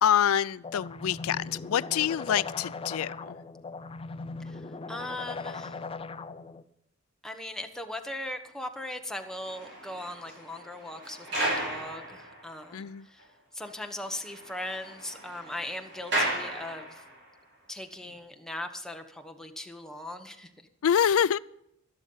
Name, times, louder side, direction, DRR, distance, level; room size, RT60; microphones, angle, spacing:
voice 1, 0.0-3.4 12.7-13.0 20.8-21.4, left 9 dB, 85° left, 18 dB, 0.4 m, -26 dB
sound 1, 0.6-6.6, left 3 dB, 25° left, 0.5 m, -39 dB
voice 2, 4.4-5.8 7.2-13.3 13.5-17.0 17.7-20.5, left 1 dB, 5° left, 4 dB, 1.1 m, -39 dB
sound 2, 9.2-12.9 13.2-13.3 13.6-13.7 14.0-17.3 18.0-18.2, right 1 dB, 60° right, 6.4 m, -35 dB
12.5 x 11.5 x 5.5 m, 0.79 s
head